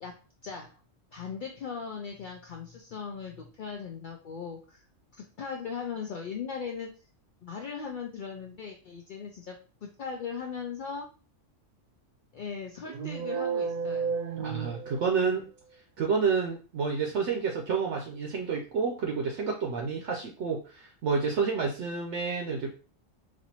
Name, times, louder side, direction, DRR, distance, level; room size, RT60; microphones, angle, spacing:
voice 1, 0.0-0.8 1.1-4.8 5.1-6.9 7.4-11.1 12.3-14.2, left 6 dB, 75° left, 1 dB, 0.4 m, -39 dB
sound 1, 12.9-15.4, right 6 dB, 85° right, 1.1 m, -32 dB
voice 2, 14.4-15.4 16.0-22.7, right 5 dB, 70° right, 1 dB, 0.8 m, -29 dB
4.2 x 2.6 x 2.8 m, 0.37 s
omnidirectional pair, 1.4 m